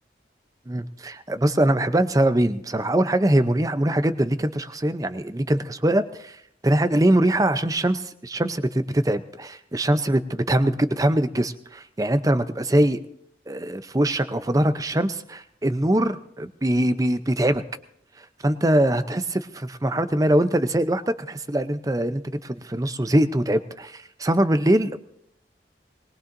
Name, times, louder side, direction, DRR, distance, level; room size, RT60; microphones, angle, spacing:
voice 1, 0.7-6.4 6.6-13.0 13.5-17.6 18.2-25.0, right 1 dB, 20° right, 11 dB, 0.6 m, -22 dB
21.5 x 20.0 x 2.6 m, 0.75 s
head